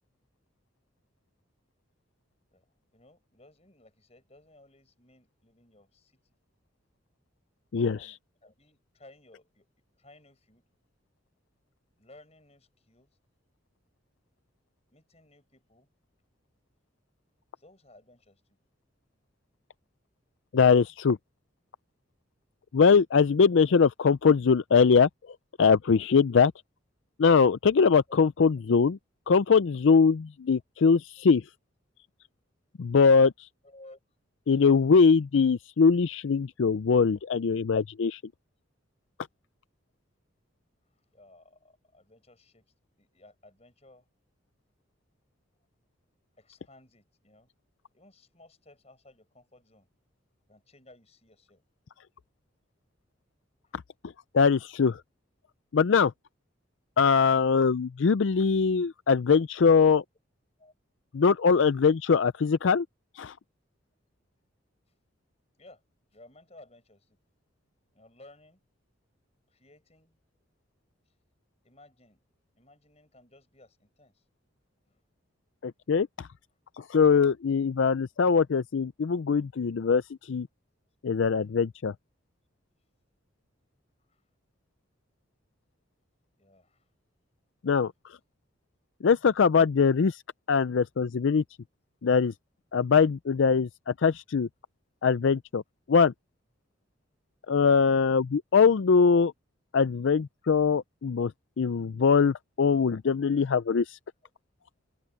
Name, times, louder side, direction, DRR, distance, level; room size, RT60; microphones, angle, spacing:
voice 1, 2.9-6.3 7.8-9.7 10.0-10.6 12.0-13.2 14.9-15.9 17.6-18.6 31.2-31.3 33.6-34.0 41.1-44.1 46.4-47.5 47.9-49.9 50.5-51.6 53.6-53.8 60.6-60.7 65.6-65.8 66.1-67.2 67.9-68.6 69.5-70.2 71.1-71.2 71.6-72.2 72.6-74.2 74.8-75.0 84.1-84.2 86.4-86.9, left 2 dB, 30° left, 6.9 m, -57 dB
voice 2, 7.7-8.1 20.5-21.2 22.7-25.1 25.6-26.5 27.2-29.0 29.3-31.4 32.8-33.3 34.5-38.2 54.3-55.0 55.7-56.1 57.0-60.0 61.1-62.9 63.2-63.3 75.6-76.3 76.8-80.5 81.0-81.9 87.6-87.9 89.0-90.2 90.5-91.4 92.0-92.3 92.7-94.5 95.0-95.6 95.9-96.1 97.5-99.3 99.7-101.3 101.6-104.0, left 5 dB, 70° left, 0.4 m, -22 dB
open air
head